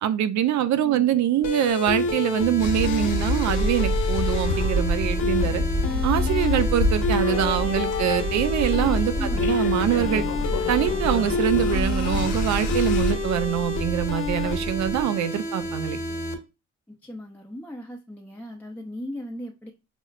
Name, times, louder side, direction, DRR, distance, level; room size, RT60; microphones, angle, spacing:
voice 1, 0.0-5.6 6.0-10.2 10.7-16.0, right 11 dB, 65° right, 0.5 m, -24 dB
voice 2, 0.8-1.1 9.1-9.7 16.9-19.7, left 1 dB, 5° left, 0.5 m, -37 dB
sound 1, 1.4-16.3, left 2 dB, 65° left, 1.2 m, -29 dB
sound 2, 2.6-13.1, left 2 dB, 85° left, 1.0 m, -26 dB
sound 3, 9.7-15.0, right 1 dB, 35° right, 1.2 m, -36 dB
6.0 x 2.0 x 2.4 m
cardioid pair, 90°, 30 cm